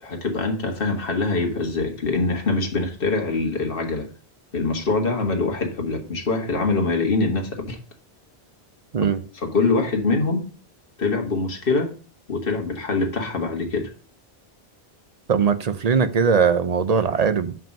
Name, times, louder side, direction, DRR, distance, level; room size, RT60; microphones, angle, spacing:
voice 1, 0.0-4.1 4.5-7.8 9.4-10.5 11.0-11.9 12.3-13.9, left 3 dB, 60° left, 1.8 m, -24 dB
voice 2, 15.3-17.5, right 6 dB, 45° right, 0.7 m, -20 dB
7.3 x 5.5 x 5.3 m
omnidirectional pair, 1.1 m